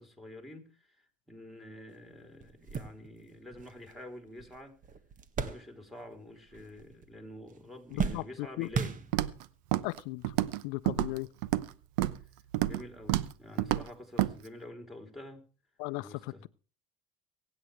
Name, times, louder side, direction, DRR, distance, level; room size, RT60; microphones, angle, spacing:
voice 1, 0.0-4.8 5.4-9.0 12.7-15.5 16.0-16.5, left 1 dB, ahead, 3.4 m, -48 dB
sound 1, 1.9-2.0 2.4-6.2 6.5-7.2 7.5-9.5 10.3-10.4 11.7-11.8, right 5 dB, 40° right, 1.6 m, -38 dB
voice 2, 8.0-8.7 9.8-10.2 10.6-11.3 15.8-16.5, left 23 dB, 80° left, 0.6 m, -36 dB
Walk footsteps, 9.1-9.4 9.7-10.0 10.2-10.6 10.9-11.7 12.0-12.2 12.5-12.8 13.1-13.3 13.6-13.8 14.2-14.3, right 15 dB, 85° right, 0.9 m, -29 dB
24.0 x 8.9 x 3.3 m
supercardioid pair, 90°, 20 cm